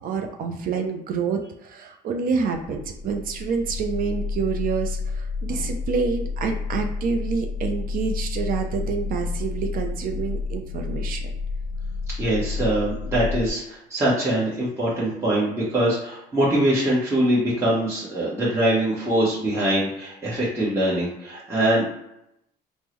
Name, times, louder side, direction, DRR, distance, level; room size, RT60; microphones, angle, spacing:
voice 1, 0.0-11.2, right 5 dB, 60° right, 4 dB, 0.5 m, -27 dB
sound 1, 2.6-13.5, left 4 dB, 80° left, 0.5 m, -30 dB
voice 2, 12.2-21.8, right 1 dB, 15° right, -7 dB, 1.0 m, -23 dB
3.6 x 2.0 x 3.0 m, 0.82 s
cardioid pair, 110°, 17 cm